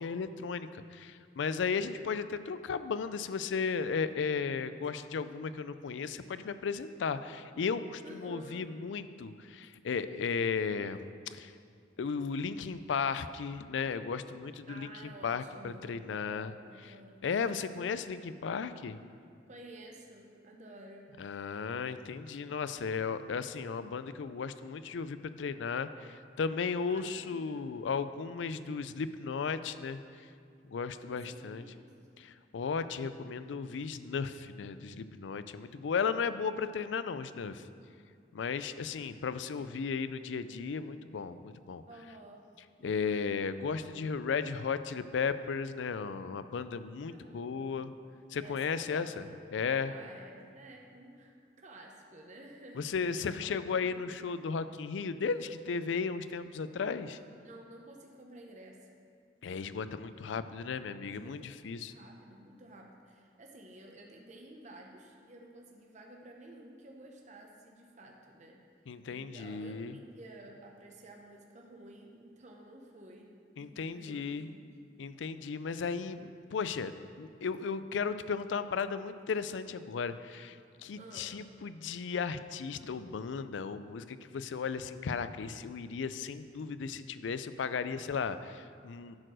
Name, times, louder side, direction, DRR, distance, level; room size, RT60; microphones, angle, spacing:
voice 1, 0.0-11.5 12.0-16.5 17.2-19.0 21.2-30.0 30.7-31.6 32.2-37.6 38.3-41.8 42.8-47.9 48.3-49.2 49.5-49.9 52.8-57.2 59.4-61.9 68.9-69.9 73.6-74.5 75.0-89.2, left 5 dB, 85° left, 12 dB, 0.4 m, -35 dB
voice 2, 8.0-8.7 14.7-17.3 19.5-21.1 26.9-27.7 31.1-31.8 41.9-42.5 42.8-43.5 47.1-47.8 48.4-49.3 49.8-54.2 57.4-58.9 61.1-68.6 69.1-74.8 81.0-81.4, right 1 dB, 40° right, 1 dB, 0.8 m, -52 dB
10.5 x 4.5 x 6.2 m, 2.3 s
head